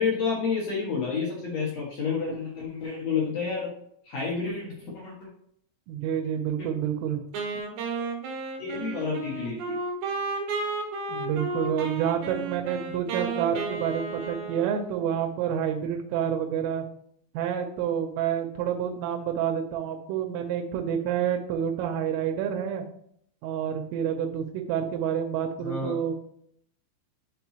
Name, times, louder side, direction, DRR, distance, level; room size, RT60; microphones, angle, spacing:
voice 1, 0.0-3.7 4.0-5.3 6.6-6.7 8.6-9.8 25.6-26.0, left 5 dB, 85° left, -5 dB, 1.4 m, -30 dB
voice 2, 5.9-7.2 11.1-16.8 17.4-22.9 23.4-26.1, right 9 dB, 90° right, 3 dB, 3.3 m, -28 dB
Wind instrument woodwind instrument, 7.3-15.3, right 4 dB, 70° right, 3.4 m, -33 dB
12.0 x 4.4 x 2.9 m, 0.68 s
omnidirectional pair, 5.6 m